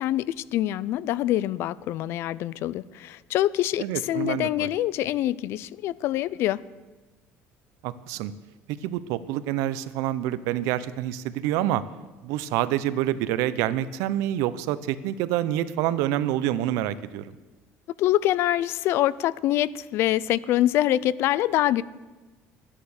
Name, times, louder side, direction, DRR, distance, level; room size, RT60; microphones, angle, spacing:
voice 1, 0.0-6.6 18.0-21.8, left 13 dB, 50° left, 20 dB, 0.4 m, -25 dB
voice 2, 3.8-4.7 7.8-8.3 8.8-11.8 12.2-17.4, right 12 dB, 80° right, 15 dB, 0.7 m, -27 dB
13.5 x 9.9 x 6.5 m, 1.2 s
cardioid pair, 165°, 5 cm